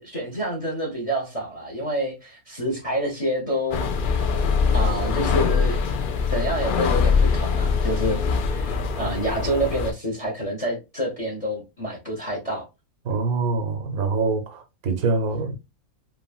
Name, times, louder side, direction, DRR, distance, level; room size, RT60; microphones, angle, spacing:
voice 1, 0.0-3.9 4.7-5.8 6.3-8.2 8.5-12.7, right 1 dB, 30° left, 0.8 m, -28 dB
sound 1, 3.7-9.9, left 5 dB, 80° left, 0.4 m, -23 dB
voice 2, 13.0-15.6, right 3 dB, 85° right, 1.3 m, -25 dB
3.3 x 2.4 x 2.3 m
omnidirectional pair, 1.5 m